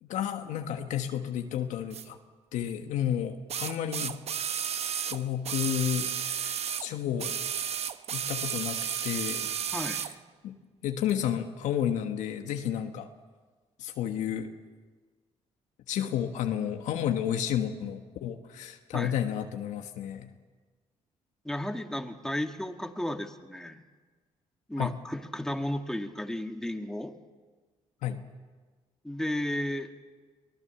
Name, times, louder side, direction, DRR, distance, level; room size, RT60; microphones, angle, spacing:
voice 1, 0.0-2.2 2.5-4.2 5.1-7.5 8.1-9.5 10.0-10.1 10.4-10.5 10.8-13.1 13.8-14.5 15.9-20.3 24.8-24.9 28.0-28.2, left 10 dB, 85° left, 5 dB, 1.4 m, -31 dB
sound 1, 1.9-2.0 3.5-6.9 7.2-10.1 11.1-11.2, right 8 dB, 60° right, 0.9 m, -33 dB
voice 2, 9.7-10.0 18.9-19.1 21.4-23.8 24.7-27.1 29.0-29.9, left 1 dB, 5° left, 5 dB, 1.8 m, -33 dB
23.5 x 18.5 x 7.1 m, 1.4 s
cardioid pair, 80°, 12 cm